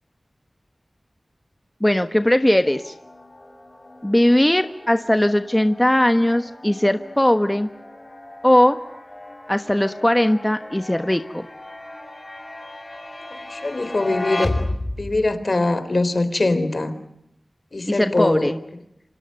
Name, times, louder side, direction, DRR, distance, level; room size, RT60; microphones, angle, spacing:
voice 1, 1.8-2.9 4.0-7.7 8.4-8.8 9.5-11.5 17.9-18.6, left 1 dB, 15° left, 9 dB, 1.2 m, -19 dB
sound 1, 2.6-15.3, left 1 dB, 35° left, 7.2 m, -34 dB
voice 2, 13.3-14.6 15.0-16.9 17.7-18.5, left 2 dB, 60° left, 12 dB, 3.7 m, -22 dB
29.0 x 26.5 x 6.7 m, 0.82 s
wide cardioid pair, 60°, 0 cm